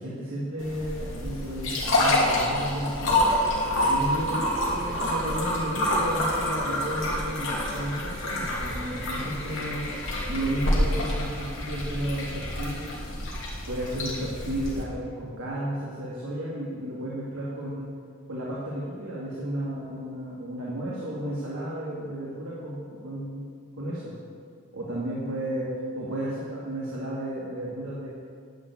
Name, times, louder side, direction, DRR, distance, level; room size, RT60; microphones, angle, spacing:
voice 1, 0.0-3.3 3.8-9.9 10.3-12.8 13.7-17.9 18.3-23.4 23.8-24.1 24.7-28.1, right 1 dB, 80° right, -7 dB, 2.4 m, -33 dB
sound 1, 0.6-14.8, left 1 dB, 65° left, 2.7 m, -27 dB
11.0 x 7.1 x 8.5 m, 2.2 s
head